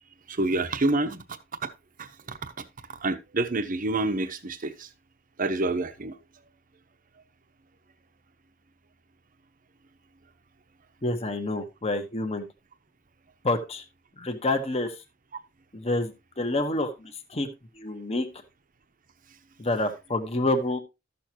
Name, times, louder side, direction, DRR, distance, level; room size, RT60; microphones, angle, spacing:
voice 1, 0.3-1.2 1.6-1.7 2.0-2.4 3.0-4.9 5.4-6.1, right 2 dB, 45° right, 0.9 m, -27 dB
voice 2, 11.0-12.4 13.4-13.8 14.2-15.0 15.7-17.5 17.7-18.3 19.6-20.8, left 2 dB, 35° left, 1.3 m, -28 dB
13.5 x 6.8 x 3.0 m
head